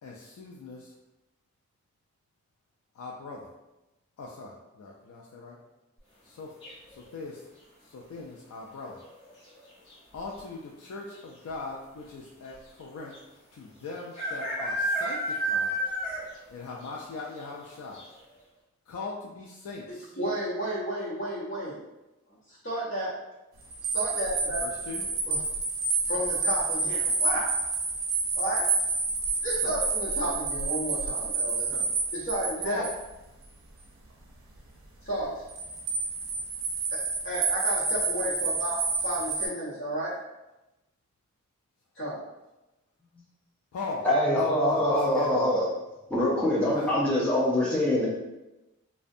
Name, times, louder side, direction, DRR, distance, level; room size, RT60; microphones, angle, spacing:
voice 1, 0.0-0.9 3.0-3.5 4.2-5.6 6.2-6.5 7.1-7.4 7.8-9.0 10.1-13.1 13.5-15.8 16.5-18.0 18.9-20.1 24.6-25.0 29.6-29.7 31.7-31.9 32.6-32.9 43.7-44.1 44.7-45.4 46.7-46.9, left 3 dB, 85° left, -3 dB, 0.3 m, -40 dB
sound 1, 6.6-7.1 8.9-9.3 9.5-9.6 9.9-10.4 11.2-11.3 11.5-11.6 13.1-13.2 14.1-16.4 16.8-16.9 17.4-17.5 17.9-18.0, right 1 dB, 20° left, 1.1 m, -30 dB
voice 2, 19.9-21.8 22.3-23.1 23.9-24.6 25.3-25.4 26.1-27.6 28.4-28.7 29.4-31.7 32.1-32.8 35.0-35.4 36.9-40.2 42.0-42.2, right 1 dB, 60° left, -8 dB, 0.8 m, -32 dB
sound 2, 23.7-33.0 35.5-39.5, right 3 dB, 70° right, 0.5 m, -29 dB
voice 3, 44.0-45.6 46.1-48.1, left 1 dB, 5° left, -7 dB, 0.5 m, -24 dB
2.4 x 2.1 x 2.5 m, 1.0 s
head